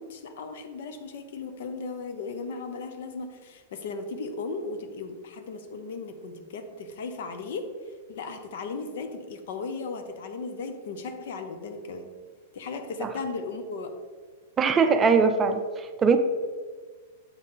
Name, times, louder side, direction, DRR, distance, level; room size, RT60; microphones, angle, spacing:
voice 1, 0.0-7.7 8.1-12.1 12.5-13.9, left 4 dB, 70° left, 7 dB, 0.7 m, -36 dB
voice 2, 14.6-16.2, right 5 dB, 20° right, 7 dB, 0.4 m, -21 dB
7.2 x 3.7 x 4.0 m, 1.5 s
hypercardioid pair, 130°, 0 cm